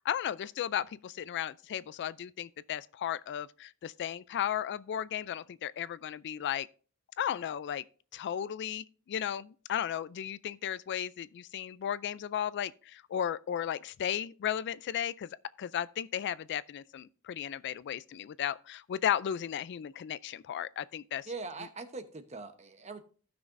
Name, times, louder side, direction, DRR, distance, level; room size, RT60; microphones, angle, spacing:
voice 1, 0.0-6.7 7.2-7.8 8.1-15.3 15.6-21.3, left 10 dB, 50° left, 0.3 m, -35 dB
voice 2, 21.3-23.0, right 3 dB, 30° right, 0.9 m, -42 dB
16.0 x 6.1 x 2.5 m
head